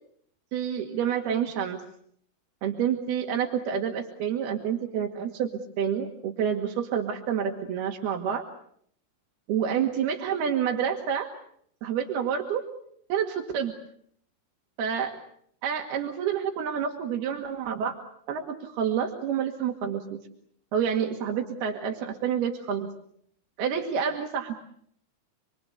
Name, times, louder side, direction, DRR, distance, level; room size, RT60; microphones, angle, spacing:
voice 1, 0.5-1.8 2.6-5.5 5.8-8.4 9.5-11.3 11.8-12.6 13.1-13.7 14.8-15.1 15.6-17.9 18.3-20.2 20.7-22.9 23.6-24.5, right 8 dB, 90° right, 3 dB, 4.0 m, -28 dB
28.0 x 23.0 x 8.1 m, 0.67 s
omnidirectional pair, 4.4 m